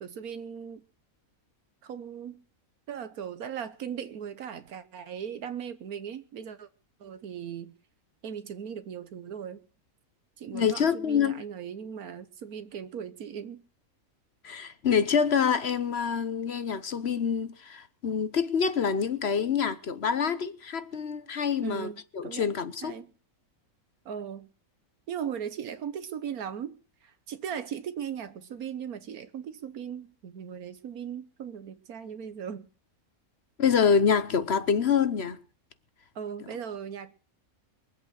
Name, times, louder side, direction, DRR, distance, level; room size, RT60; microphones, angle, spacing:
voice 1, 0.0-0.8 1.8-2.4 2.9-6.7 7.0-7.7 8.2-9.6 10.4-13.6 21.6-22.5 22.8-23.1 24.0-24.5 25.1-32.7 36.1-37.1, right 8 dB, 80° right, 1.5 m, -38 dB
voice 2, 10.5-11.4 14.4-22.9 33.6-35.4, left 6 dB, 50° left, 1.1 m, -26 dB
22.5 x 8.2 x 6.4 m
omnidirectional pair, 1.5 m